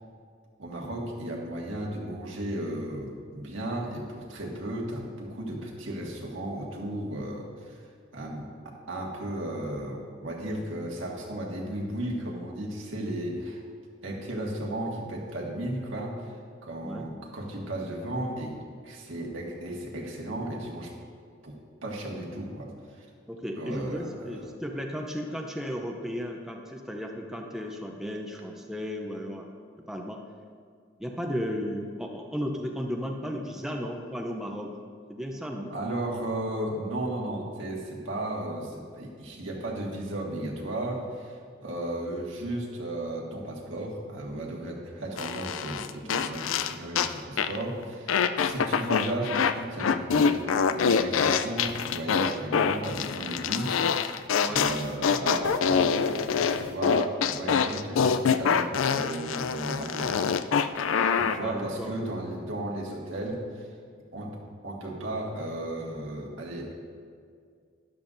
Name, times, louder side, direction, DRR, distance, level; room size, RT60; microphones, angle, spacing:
voice 1, 0.6-7.9 8.1-13.6 14.0-18.5 18.8-20.9 21.4-23.1 23.5-24.5 35.7-54.1 54.4-60.2 61.1-63.7 64.1-64.4 64.6-66.7, right 1 dB, 75° right, -2 dB, 1.7 m, -35 dB
voice 2, 23.3-29.5 29.9-30.2 31.0-34.7 35.1-35.7 54.4-54.6 61.4-61.9, equal, 5° right, 1 dB, 0.6 m, -34 dB
sound 1, 45.2-47.1 47.4-47.6 48.1-49.5 49.8-61.4, left 6 dB, 80° left, 0.4 m, -25 dB
12.5 x 10.5 x 2.6 m, 2.1 s
head